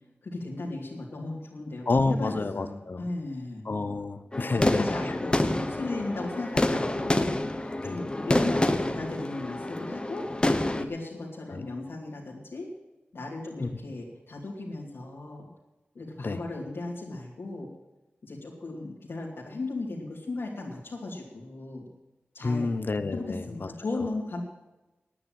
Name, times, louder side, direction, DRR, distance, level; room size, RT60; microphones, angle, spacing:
voice 1, 0.2-3.6 4.5-7.4 7.6-12.7 13.1-15.5 15.9-17.7 18.2-21.8 22.3-22.7 23.1-24.4, left 2 dB, 75° left, -4 dB, 2.7 m, -36 dB
voice 2, 1.9-3.1 3.6-5.1 7.8-8.0 11.5-11.7 13.6-13.7 16.2-16.4 22.4-23.7, left 3 dB, 55° left, 11 dB, 0.9 m, -29 dB
sound 1, 4.3-10.8, left 1 dB, 25° left, 1.1 m, -27 dB
9.8 x 9.8 x 9.0 m, 1.0 s
cardioid pair, 55°, 4 cm